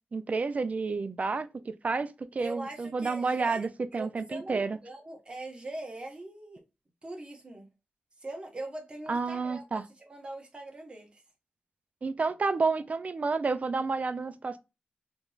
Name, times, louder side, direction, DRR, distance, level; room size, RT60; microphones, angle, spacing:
voice 1, 0.1-4.8 9.1-9.8 12.0-14.6, right 4 dB, 45° right, 0.4 m, -30 dB
voice 2, 2.4-3.7 3.9-6.6 7.0-7.7 8.2-11.2, right 2 dB, 30° right, 1.3 m, -42 dB
3.4 x 3.0 x 2.4 m
wide cardioid pair, 95°, 3 cm